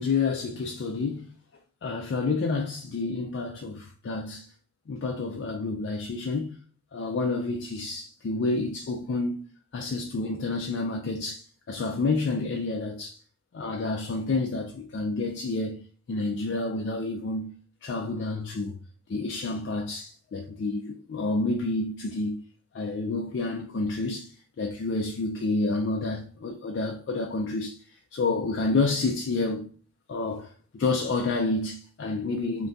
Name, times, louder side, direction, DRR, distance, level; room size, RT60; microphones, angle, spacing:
voice 1, 0.0-1.3 1.8-4.5 4.9-6.6 6.9-9.5 9.7-13.2 13.5-18.8 19.1-22.4 22.7-27.8 28.1-29.7 30.1-32.7, left 3 dB, 60° left, 0.3 m, -29 dB
2.6 x 2.2 x 3.3 m
head